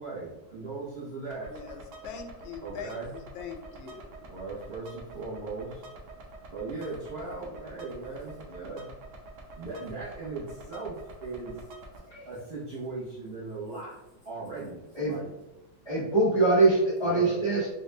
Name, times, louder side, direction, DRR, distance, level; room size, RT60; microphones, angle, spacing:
voice 1, 0.0-1.5 2.6-3.1 4.3-5.9 6.5-8.9 9.6-11.6 12.3-13.9 14.2-15.3 17.0-17.4, right 3 dB, 85° right, -7 dB, 0.5 m, -38 dB
sound 1, 1.3-12.0, right 2 dB, 70° right, 1.1 m, -47 dB
voice 2, 1.5-4.3, left 6 dB, 85° left, 4 dB, 1.4 m, -42 dB
voice 3, 15.9-17.7, right 2 dB, 30° left, -9 dB, 0.5 m, -23 dB
4.0 x 2.1 x 3.1 m, 0.97 s
omnidirectional pair, 2.1 m